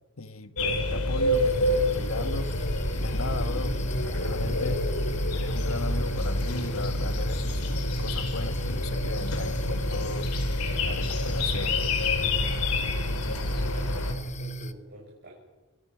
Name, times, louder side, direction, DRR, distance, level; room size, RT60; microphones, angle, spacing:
voice 1, 0.2-2.5 3.0-3.8 4.1-4.8 5.3-10.5 10.8-11.7, left 3 dB, 70° left, 10 dB, 1.5 m, -37 dB
sound 1, 0.6-14.1, left 1 dB, 90° left, 4.4 m, -27 dB
sound 2, 1.3-14.7, right 1 dB, 30° left, 1.2 m, -37 dB
voice 2, 13.6-15.3, right 1 dB, 50° right, -3 dB, 6.8 m, -48 dB
29.0 x 23.0 x 6.2 m, 1.2 s
head